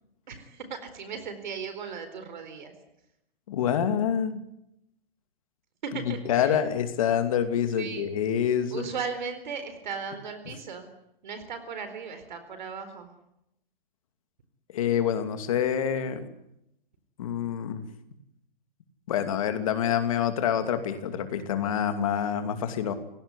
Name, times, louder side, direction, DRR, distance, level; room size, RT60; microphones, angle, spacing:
voice 1, 0.3-2.7 5.8-6.6 7.8-8.1 8.7-10.9 11.2-13.1, right 5 dB, 50° right, 9 dB, 4.3 m, -37 dB
voice 2, 3.5-4.4 5.9-8.9 14.7-16.2 17.2-17.9 19.1-22.9, left 8 dB, 35° left, 8 dB, 2.7 m, -27 dB
30.0 x 17.5 x 9.9 m, 0.81 s
hypercardioid pair, 180°, 29 cm